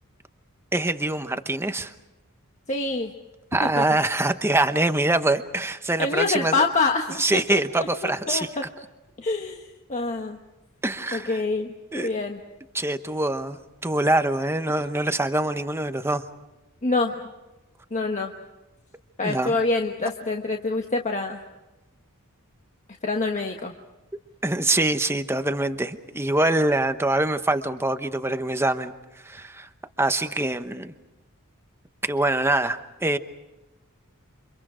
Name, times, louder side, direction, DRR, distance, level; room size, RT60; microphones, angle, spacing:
voice 1, 0.7-1.9 3.5-6.5 7.2-8.5 10.8-11.4 11.9-12.1 12.7-16.2 19.2-19.5 24.4-28.9 29.2-29.7 30.0-30.9 32.0-33.2, right 2 dB, 10° right, 9 dB, 1.0 m, -24 dB
voice 2, 2.7-3.1 3.6-3.8 6.0-8.7 9.2-10.4 11.1-12.4 16.8-17.2 17.9-18.3 19.2-21.4 23.0-23.7, left 3 dB, 35° left, 2 dB, 1.3 m, -26 dB
29.0 x 26.0 x 5.0 m, 1.0 s
head